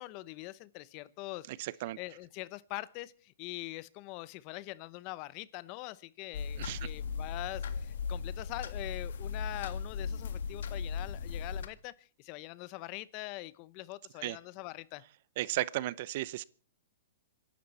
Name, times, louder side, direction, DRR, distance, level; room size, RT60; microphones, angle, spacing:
voice 1, 0.0-1.5 2.0-15.0, left 19 dB, 40° left, 0.7 m, -43 dB
voice 2, 1.5-2.0 6.6-6.9 14.2-14.4 15.4-16.4, right 16 dB, 50° right, 0.7 m, -35 dB
sound 1, 6.3-11.7, left 6 dB, 70° left, 1.8 m, -37 dB
26.5 x 11.5 x 4.2 m
hypercardioid pair, 140°, 0 cm